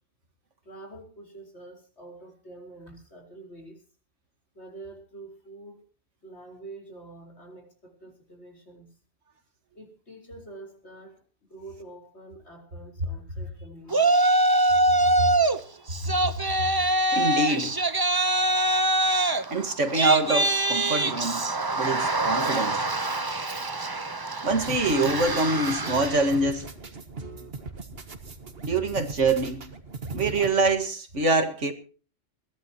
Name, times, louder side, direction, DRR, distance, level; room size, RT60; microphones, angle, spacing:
voice 1, 0.6-3.8 4.5-5.8 6.2-8.9 9.7-11.2 11.5-14.2, right 2 dB, 65° left, 4.9 m, -46 dB
Yell, 13.9-15.6 15.9-26.4, right 2 dB, 20° right, 0.8 m, -24 dB
voice 2, 15.7-16.1 17.1-17.8 19.5-21.4 21.7-22.8 24.4-26.7 28.6-29.6 30.1-31.7, right 2 dB, 75° right, 2.2 m, -25 dB
sound 1, 24.6-30.5, right 3 dB, 55° right, 1.9 m, -38 dB
21.5 x 15.5 x 3.0 m
omnidirectional pair, 1.2 m